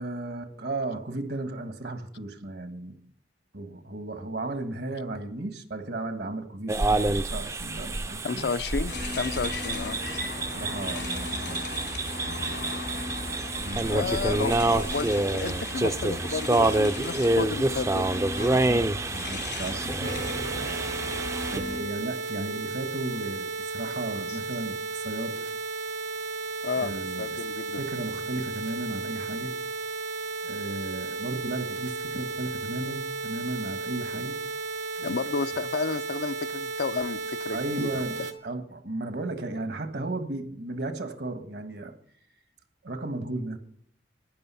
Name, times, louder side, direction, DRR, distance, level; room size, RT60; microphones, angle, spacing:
voice 1, 0.0-3.0 3.5-8.5 10.6-11.6 13.6-14.9 18.5-20.3 20.6-20.8 21.4-25.4 26.8-27.4 27.7-29.5 30.4-34.4 37.5-38.2 38.4-41.9 42.8-43.6, right 2 dB, 70° right, 7 dB, 1.5 m, -35 dB
sound 1, 6.7-21.6, right 2 dB, 15° right, 0.4 m, -28 dB
voice 2, 8.2-10.0 13.9-18.1 26.6-27.8 35.0-38.3, left 4 dB, 70° left, 14 dB, 0.5 m, -32 dB
sound 2, 8.9-21.8, left 2 dB, 90° left, 2.9 m, -36 dB
sound 3, 20.0-38.3, right 4 dB, 85° right, 1.3 m, -34 dB
12.5 x 10.0 x 5.7 m, 0.64 s
head